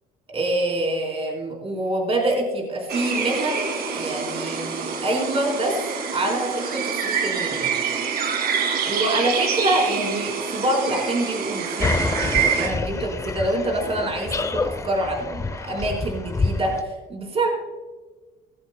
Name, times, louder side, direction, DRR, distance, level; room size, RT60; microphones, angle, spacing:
voice 1, 0.3-5.8 6.1-7.7 8.9-17.5, right 1 dB, 35° right, 0 dB, 4.0 m, -26 dB
sound 1, 2.9-12.7, right 6 dB, 65° right, 1.9 m, -26 dB
sound 2, 11.8-16.8, left 3 dB, 20° left, 0.6 m, -27 dB
17.0 x 14.5 x 2.2 m, 1.3 s
cardioid pair, 110°, 17 cm